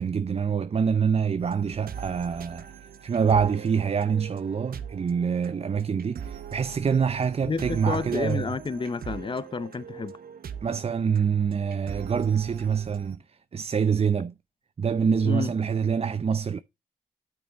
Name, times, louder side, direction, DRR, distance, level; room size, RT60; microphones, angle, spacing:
voice 1, 0.0-2.7 3.0-8.5 10.6-13.2 13.5-14.3 14.8-16.6, right 6 dB, 40° right, 0.5 m, -25 dB
sound 1, 1.4-13.2, right 8 dB, 70° right, 0.9 m, -42 dB
voice 2, 7.4-10.2 15.2-15.5, left 4 dB, 30° left, 0.6 m, -30 dB
8.9 x 6.3 x 3.4 m
supercardioid pair, 40°, 16 cm